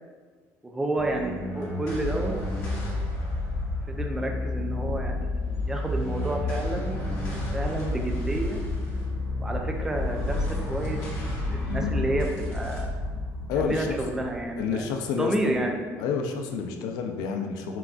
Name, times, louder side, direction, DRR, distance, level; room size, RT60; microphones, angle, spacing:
voice 1, 0.6-2.4 3.9-6.9 7.5-8.6 9.4-12.9 13.6-14.9 15.2-15.8, right 1 dB, 10° right, 2 dB, 0.3 m, -30 dB
sound 1, 1.0-15.6, left 2 dB, 45° left, 1.2 m, -30 dB
voice 2, 11.7-12.0 13.5-14.0 14.6-15.7 16.0-17.8, left 6 dB, 90° left, 5 dB, 0.4 m, -29 dB
5.8 x 2.5 x 2.4 m, 1.5 s
cardioid pair, 160°, 6 cm